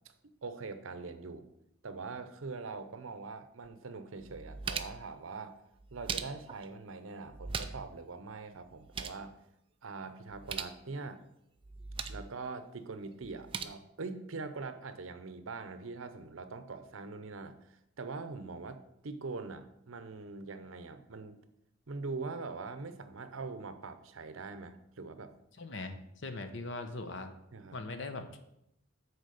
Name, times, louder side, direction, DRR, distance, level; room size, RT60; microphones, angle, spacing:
voice 1, 0.4-1.4 1.8-5.6 5.9-9.4 9.8-11.2 12.1-21.4 21.9-25.3 27.5-27.8, right 4 dB, 75° right, 10 dB, 0.7 m, -43 dB
sound 1, 3.6-3.7 4.2-5.1 5.8-6.6 7.3-8.0 8.2-8.3 8.7-9.2 10.3-10.8 11.6-12.3 13.2-13.6, right 6 dB, 25° right, 0.3 m, -40 dB
voice 2, 25.6-27.3 27.7-28.3, left 2 dB, 60° left, 8 dB, 0.8 m, -40 dB
6.5 x 4.5 x 6.5 m, 0.79 s
head